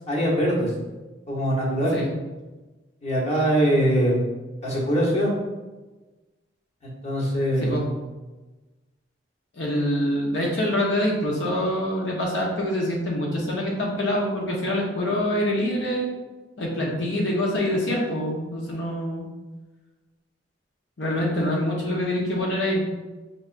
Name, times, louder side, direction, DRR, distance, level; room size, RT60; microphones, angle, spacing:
voice 1, 0.1-0.7 1.3-2.0 3.0-4.1 4.6-5.3 6.8-7.9, equal, 35° left, -4 dB, 1.1 m, -22 dB
voice 2, 9.6-16.1 16.6-19.3 21.0-22.8, left 1 dB, 75° left, -2 dB, 0.8 m, -25 dB
5.4 x 3.3 x 2.5 m, 1.2 s
head